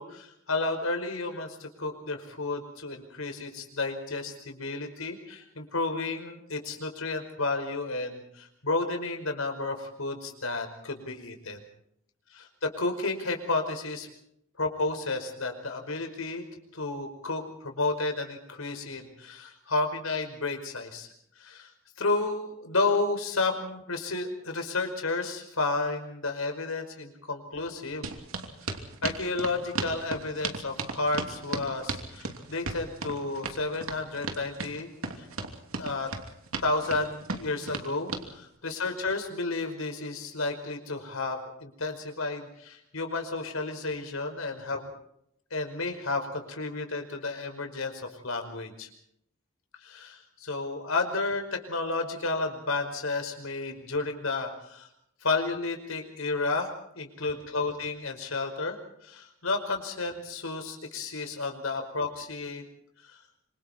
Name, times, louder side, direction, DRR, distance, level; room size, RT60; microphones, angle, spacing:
voice 1, 0.0-11.6 12.3-14.1 14.6-16.4 16.7-21.1 21.4-21.7 22.0-28.1 28.8-34.9 35.2-35.3 35.8-36.1 36.6-44.9 45.5-48.9 49.8-54.9 55.2-58.8 59.0-62.6 63.0-63.2, left 3 dB, 80° left, 5 dB, 5.1 m, -32 dB
sound 1, 28.0-38.3, right 3 dB, 85° right, 2.9 m, -35 dB
26.5 x 26.0 x 4.5 m, 0.74 s
head